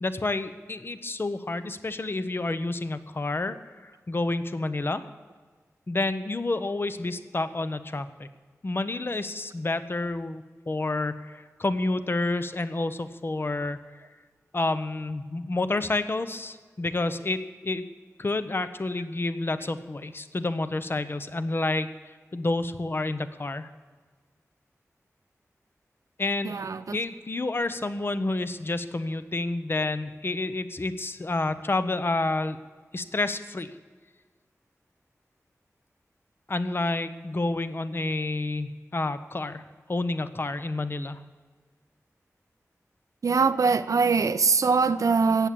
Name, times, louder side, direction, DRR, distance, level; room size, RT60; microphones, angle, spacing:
voice 1, 0.0-3.6 3.8-5.1 5.9-8.3 8.6-13.8 14.5-17.8 18.2-23.7 26.2-26.5 26.9-32.6 32.9-33.7 36.5-39.6 39.9-41.2, left 2 dB, 45° left, 0.9 m, -29 dB
voice 2, 26.4-27.0 43.2-45.5, right 5 dB, 85° right, 0.7 m, -22 dB
17.5 x 7.5 x 8.6 m
wide cardioid pair, 75°, 6 cm